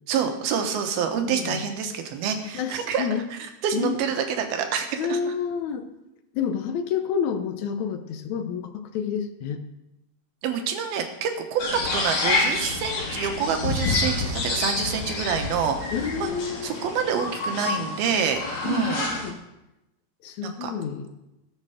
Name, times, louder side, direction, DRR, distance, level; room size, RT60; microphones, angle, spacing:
voice 1, 0.1-3.1 3.6-5.2 10.4-15.9 16.2-16.3 16.6-19.1 20.4-20.7, right 7 dB, 85° right, 5 dB, 3.1 m, -27 dB
voice 2, 1.2-1.6 2.5-3.3 3.7-4.0 5.0-5.9 6.3-9.6 15.9-16.7 18.6-19.4 20.2-21.1, left 7 dB, 75° left, 7 dB, 1.8 m, -29 dB
sound 1, 11.6-19.3, left 3 dB, 50° left, 3.2 m, -28 dB
19.5 x 6.7 x 5.0 m, 0.93 s
omnidirectional pair, 4.2 m